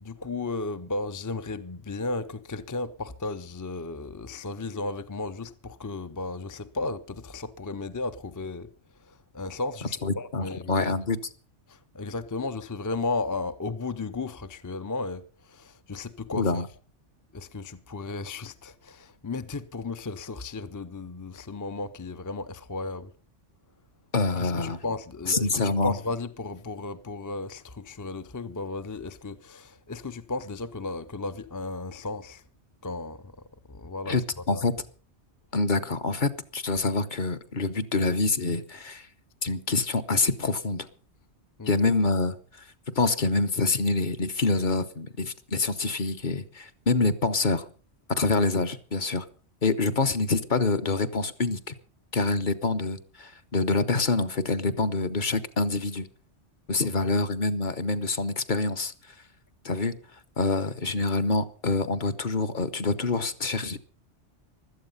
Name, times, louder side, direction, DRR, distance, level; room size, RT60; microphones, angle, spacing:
voice 1, 0.0-8.7 9.1-10.9 11.7-16.5 17.3-23.1 24.4-32.4 32.8-33.3 33.7-34.2 34.5-34.6 41.6-41.8 57.0-57.1, left 3 dB, 25° left, 0.5 m, -34 dB
voice 2, 10.0-11.2 16.3-16.7 24.1-24.8 25.3-26.0 34.1-34.7 35.5-39.1 39.4-40.9 41.7-42.4 42.9-47.6 48.1-49.3 49.6-51.7 52.1-56.1 56.7-58.9 59.6-60.0 60.4-63.8, left 3 dB, 45° left, 1.1 m, -26 dB
16.0 x 12.5 x 5.5 m
omnidirectional pair, 1.2 m